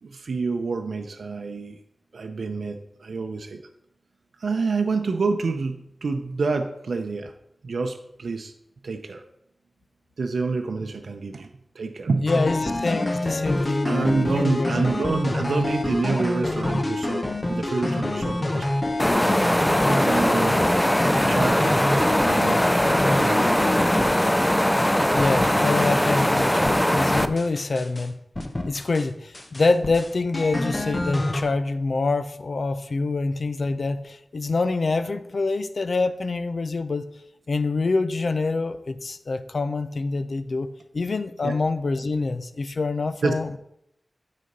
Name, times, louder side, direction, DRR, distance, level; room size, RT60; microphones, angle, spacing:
voice 1, 0.0-1.8 2.1-3.6 4.4-7.3 7.6-8.5 8.8-9.2 10.2-11.5 11.7-12.3 13.8-18.7 19.9-20.6 21.3-23.6 25.4-25.7 41.4-41.6 43.2-43.4, right 4 dB, 85° right, 5 dB, 0.6 m, -28 dB
voice 2, 12.2-14.7 25.1-28.2 28.7-37.1 37.5-43.6, left 3 dB, 60° left, 11 dB, 0.6 m, -26 dB
sound 1, 12.3-24.9 25.2-25.9 26.2-28.1 28.3-29.1 29.3-31.4, left 1 dB, 30° left, 0.8 m, -27 dB
sound 2, 19.0-27.3, equal, 10° left, 0.4 m, -21 dB
9.4 x 4.2 x 5.3 m, 0.78 s
wide cardioid pair, 95°, 0 cm